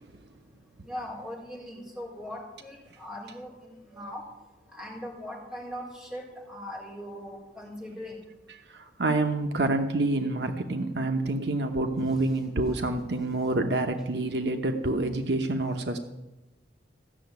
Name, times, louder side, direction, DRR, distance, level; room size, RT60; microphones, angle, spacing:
voice 1, 0.8-4.2 4.7-6.2 6.5-8.2, left 1 dB, 5° right, -4 dB, 4.6 m, -40 dB
voice 2, 8.5-16.0, right 2 dB, 70° right, 5 dB, 1.0 m, -27 dB
15.0 x 6.8 x 9.3 m, 1.1 s
head